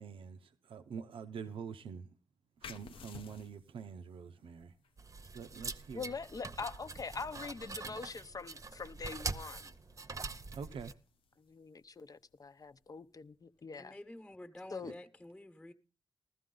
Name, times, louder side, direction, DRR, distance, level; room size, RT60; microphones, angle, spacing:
voice 1, 0.0-2.2 2.6-4.8 5.3-6.2 10.5-11.0 14.8-14.9, right 6 dB, 85° right, 0.7 m, -46 dB
sound 1, 2.6-13.9, left 6 dB, 85° left, 0.8 m, -59 dB
sound 2, 5.0-10.9, right 3 dB, 35° right, 0.8 m, -44 dB
voice 2, 5.9-9.7 11.4-13.9 14.7-14.9, left 4 dB, 45° left, 0.7 m, -43 dB
voice 3, 13.7-15.7, left 1 dB, 10° left, 1.1 m, -49 dB
15.0 x 13.5 x 3.8 m
cardioid pair, 75°, 9 cm